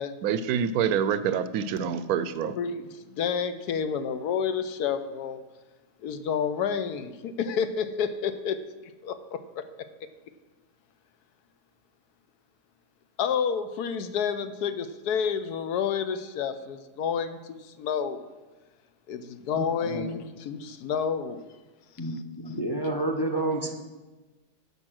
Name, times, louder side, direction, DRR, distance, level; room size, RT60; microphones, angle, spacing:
voice 1, 0.2-2.6, right 8 dB, 75° right, 13 dB, 1.0 m, -26 dB
voice 2, 2.6-5.4 6.0-8.6 9.0-9.6 13.2-18.2 19.1-21.4, left 7 dB, 75° left, 10 dB, 1.2 m, -29 dB
voice 3, 19.5-20.0 22.0-23.7, right 1 dB, 25° left, 3 dB, 0.5 m, -30 dB
12.0 x 5.4 x 6.3 m, 1.2 s
omnidirectional pair, 1.7 m